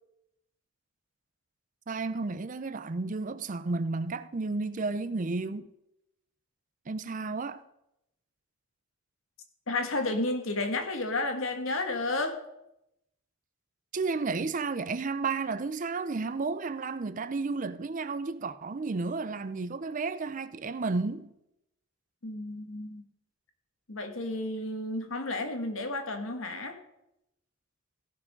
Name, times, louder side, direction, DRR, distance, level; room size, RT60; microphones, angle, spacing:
voice 1, 1.9-5.7 6.9-7.6 13.9-21.3, right 3 dB, 40° right, 0.5 m, -32 dB
voice 2, 9.7-12.4 22.2-23.0 23.9-26.8, left 2 dB, 75° left, 1.6 m, -32 dB
15.5 x 6.0 x 5.2 m
head